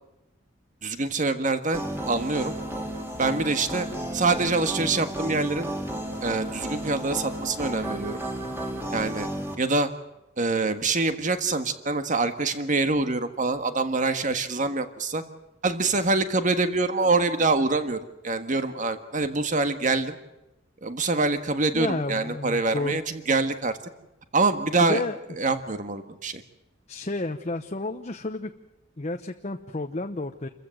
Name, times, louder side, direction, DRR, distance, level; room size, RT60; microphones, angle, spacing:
voice 1, 0.8-2.5 3.2-3.9 4.1-5.7 6.2-8.2 8.9-9.3 9.6-9.9 10.4-15.2 15.6-20.1 20.8-23.7 24.3-25.0 25.4-26.4, right 3 dB, 45° right, 9 dB, 1.6 m, -25 dB
sound 1, 1.7-9.6, right 1 dB, 15° right, 2.9 m, -33 dB
voice 2, 21.7-23.0 24.8-25.2 26.9-28.5 29.0-30.5, left 2 dB, 35° left, 5 dB, 0.9 m, -31 dB
28.0 x 15.0 x 7.7 m, 0.97 s
head